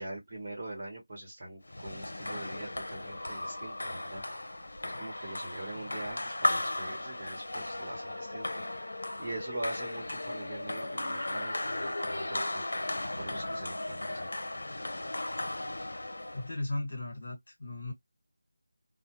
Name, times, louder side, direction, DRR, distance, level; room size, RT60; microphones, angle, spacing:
voice 1, 0.0-4.2 4.8-8.6 9.2-12.6 13.2-14.3, right 1 dB, 30° right, 1.0 m, -42 dB
sound 1, 1.7-16.5, left 1 dB, 80° left, 0.6 m, -36 dB
voice 2, 16.3-17.9, left 2 dB, 50° left, 1.3 m, -36 dB
2.3 x 2.1 x 2.9 m
figure-of-eight pair, 175°, 0 cm